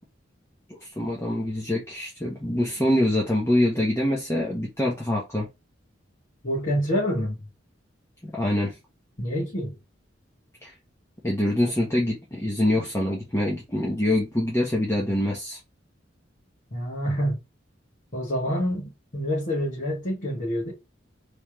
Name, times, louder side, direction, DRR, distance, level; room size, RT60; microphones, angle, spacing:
voice 1, 0.7-5.5 8.2-8.8 10.6-10.7 11.2-15.6, left 1 dB, 15° left, 0.9 m, -25 dB
voice 2, 6.4-7.5 9.2-9.7 16.7-17.4 18.1-20.7, equal, 45° left, 1.6 m, -27 dB
3.3 x 3.1 x 3.0 m
head